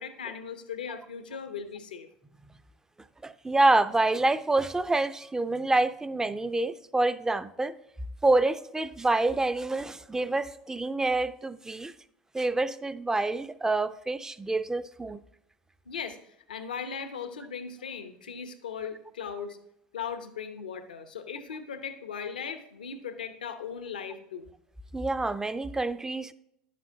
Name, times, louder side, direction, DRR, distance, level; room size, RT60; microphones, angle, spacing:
voice 1, 0.0-2.1 15.9-19.6 19.9-24.5, left 6 dB, 85° left, 0.8 m, -38 dB
voice 2, 3.2-7.8 8.2-11.9 12.3-15.2 24.9-26.3, right 2 dB, 10° right, 0.5 m, -27 dB
11.0 x 7.4 x 2.8 m
hypercardioid pair, 75°, 5 cm